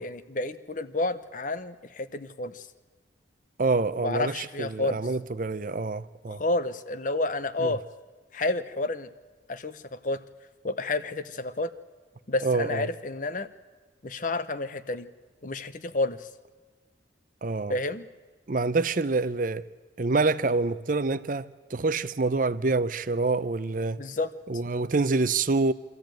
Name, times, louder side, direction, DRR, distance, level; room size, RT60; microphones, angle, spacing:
voice 1, 0.0-2.7 4.0-5.0 6.4-7.8 8.3-9.1 9.5-10.2 10.6-11.7 12.3-13.5 14.0-15.1 15.4-16.3 17.7-18.1 24.0-24.3, left 2 dB, 45° left, 0.8 m, -30 dB
voice 2, 3.6-6.4 7.6-7.7 12.4-12.9 17.4-17.8 18.5-19.6 20.0-24.0 24.5-25.7, right 3 dB, 45° right, 0.6 m, -26 dB
25.0 x 13.5 x 9.1 m
head